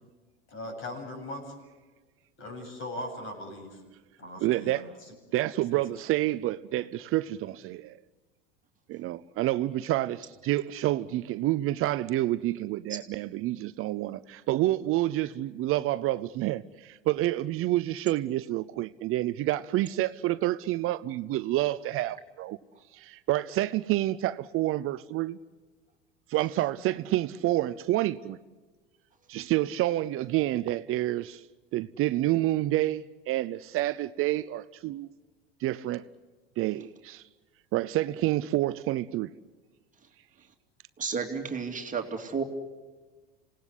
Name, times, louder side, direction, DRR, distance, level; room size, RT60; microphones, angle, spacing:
voice 1, 0.5-1.6 2.4-3.8 4.2-5.1 5.7-6.0, left 1 dB, 45° left, 8.0 m, -40 dB
voice 2, 4.4-4.8 5.3-8.0 8.9-22.6 22.9-25.4 26.3-28.4 29.3-31.4 31.7-35.1 35.6-36.1 36.6-37.2 37.7-39.3, right 15 dB, 45° right, 0.7 m, -28 dB
voice 3, 41.0-42.4, right 5 dB, 25° right, 2.6 m, -32 dB
27.5 x 18.5 x 8.3 m
hypercardioid pair, 85°, 29 cm